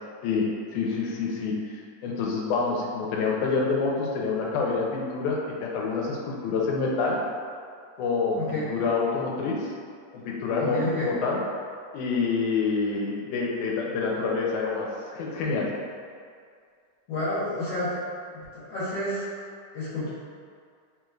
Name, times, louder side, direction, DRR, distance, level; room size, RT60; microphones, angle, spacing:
voice 1, 0.7-7.2 8.0-9.7 10.1-11.4 11.9-14.9 15.1-15.7, left 4 dB, 90° left, -3 dB, 2.1 m, -27 dB
voice 2, 10.6-11.1 17.1-18.0 18.3-19.3 19.7-20.1, left 2 dB, 65° left, -11 dB, 2.0 m, -30 dB
4.9 x 3.1 x 2.4 m, 2.2 s
omnidirectional pair, 3.4 m